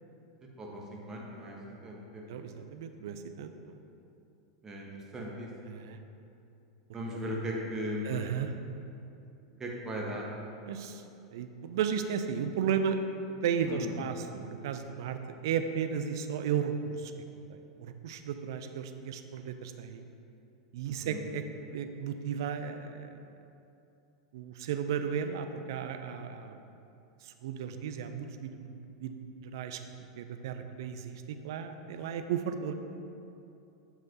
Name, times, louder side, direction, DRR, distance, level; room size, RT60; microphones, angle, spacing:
voice 1, 0.6-2.3 4.6-4.9 5.1-5.5 6.9-8.0 9.6-10.2 13.7-13.9 20.8-21.2, equal, 20° right, -2 dB, 1.1 m, -38 dB
voice 2, 2.3-3.8 5.7-6.0 7.1-7.2 8.0-8.6 10.7-11.0 11.3-13.0 13.3-17.1 17.5-20.1 20.7-23.2 24.3-26.6 27.2-29.8 30.2-32.7, right 7 dB, 60° right, 8 dB, 0.4 m, -34 dB
7.5 x 5.7 x 2.7 m, 2.7 s
figure-of-eight pair, 90°, 2 cm